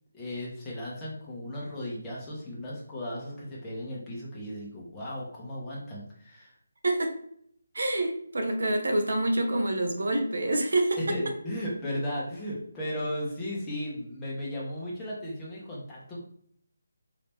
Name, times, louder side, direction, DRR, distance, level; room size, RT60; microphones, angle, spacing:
voice 1, 0.1-6.5 11.0-16.2, left 1 dB, 10° left, -6 dB, 1.1 m, -35 dB
voice 2, 6.8-7.2 7.7-11.0, right 1 dB, 70° right, 4 dB, 0.8 m, -27 dB
4.7 x 2.9 x 3.6 m, 0.67 s
figure-of-eight pair, 170°, 0 cm